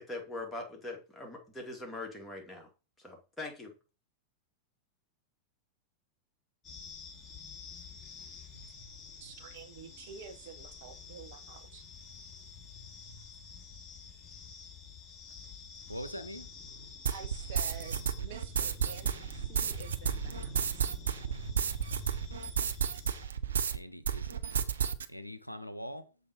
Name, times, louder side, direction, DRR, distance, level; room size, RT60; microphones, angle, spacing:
voice 1, 0.0-2.7 3.0-3.7, left 2 dB, 5° left, 2.4 m, -42 dB
sound 1, 6.6-23.3, left 4 dB, 20° left, 2.8 m, -48 dB
voice 2, 9.2-11.8 17.1-20.9, right 7 dB, 50° right, 1.0 m, -49 dB
voice 3, 15.9-16.5 23.7-24.7 25.1-26.0, equal, 90° left, 0.5 m, -43 dB
sound 2, 17.1-23.8 24.1-25.1, right 8 dB, 70° right, 0.5 m, -32 dB
6.9 x 4.0 x 5.2 m
figure-of-eight pair, 90°, 0 cm